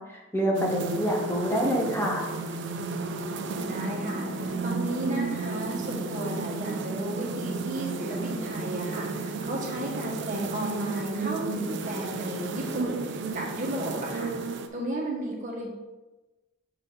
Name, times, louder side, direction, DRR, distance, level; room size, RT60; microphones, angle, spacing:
voice 1, 0.0-2.2, equal, 10° left, -2 dB, 1.2 m, -26 dB
sound 1, 0.5-14.7, right 3 dB, 65° right, 0.5 m, -33 dB
voice 2, 3.4-14.3 14.7-15.7, right 1 dB, 40° right, -2 dB, 1.5 m, -34 dB
6.7 x 3.9 x 3.9 m, 1.1 s
head